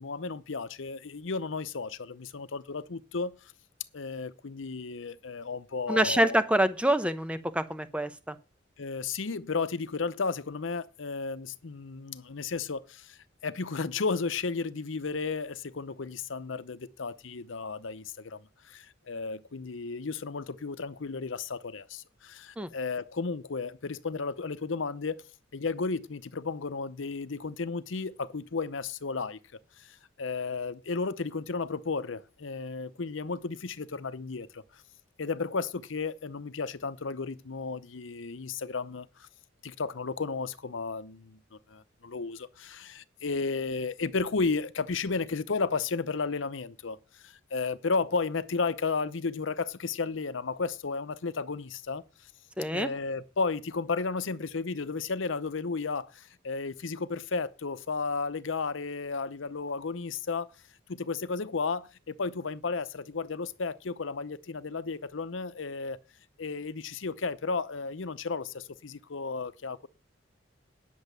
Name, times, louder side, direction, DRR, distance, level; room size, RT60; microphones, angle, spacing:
voice 1, 0.0-3.4 3.9-6.4 8.8-18.4 18.6-25.2 25.5-29.4 29.8-34.8 35.2-39.3 39.6-41.4 41.7-52.0 52.7-60.5 60.9-66.0 66.4-69.9, left 4 dB, 80° left, 0.7 m, -33 dB
voice 2, 5.9-8.3 22.6-22.7 52.6-52.9, right 1 dB, 5° right, 0.8 m, -26 dB
10.5 x 7.0 x 6.7 m
head